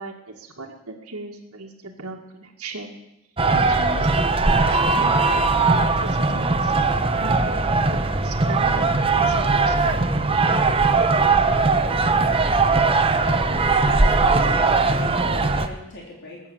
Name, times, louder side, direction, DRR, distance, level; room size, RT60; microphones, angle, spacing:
voice 1, 0.0-2.9 3.5-6.7 7.2-8.9 9.1-10.0, right 2 dB, 70° right, -1 dB, 2.1 m, -37 dB
sound 1, 3.4-15.7, right 3 dB, 25° right, 1.0 m, -19 dB
voice 2, 13.5-16.4, left 1 dB, 55° left, -3 dB, 3.5 m, -40 dB
20.5 x 8.9 x 7.4 m, 0.88 s
head